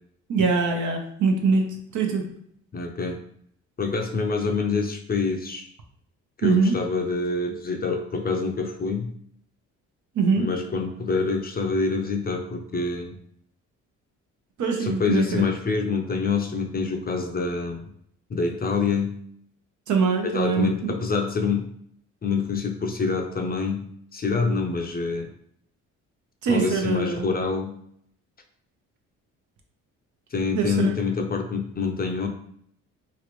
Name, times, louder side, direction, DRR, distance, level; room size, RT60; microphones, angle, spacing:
voice 1, 0.3-2.2 6.4-6.8 10.2-10.5 14.6-15.4 19.9-20.9 26.4-27.3 30.5-30.9, right 4 dB, 65° right, 3 dB, 0.8 m, -23 dB
voice 2, 2.7-3.2 3.8-5.7 6.4-9.1 10.4-13.1 14.8-17.8 18.3-19.2 20.2-21.7 22.2-25.3 26.5-27.8 30.3-32.3, left 4 dB, 30° left, 3 dB, 0.6 m, -26 dB
3.1 x 2.5 x 3.0 m, 0.67 s
supercardioid pair, 75°, 32 cm